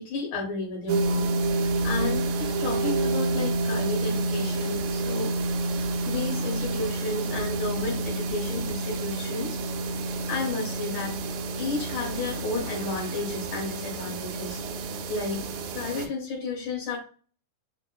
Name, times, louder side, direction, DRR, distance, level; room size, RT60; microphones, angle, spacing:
voice 1, 0.0-5.3 6.1-9.6 10.3-11.2 11.6-17.0, left 3 dB, 70° left, -3 dB, 2.4 m, -32 dB
sound 1, 0.9-16.1, right 2 dB, 80° right, 1.8 m, -29 dB
6.0 x 2.0 x 2.2 m, 0.39 s
omnidirectional pair, 3.8 m